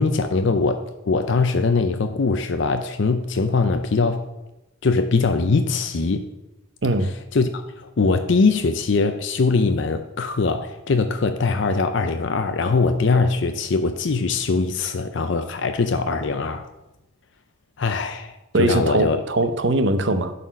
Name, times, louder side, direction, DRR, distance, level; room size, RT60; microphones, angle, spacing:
voice 1, 0.0-4.2 4.8-6.3 7.3-16.6 17.8-19.2, left 4 dB, 60° left, 0.5 m, -22 dB
voice 2, 6.8-7.1 18.5-20.3, right 2 dB, 55° right, 0.7 m, -21 dB
11.0 x 4.2 x 6.2 m
head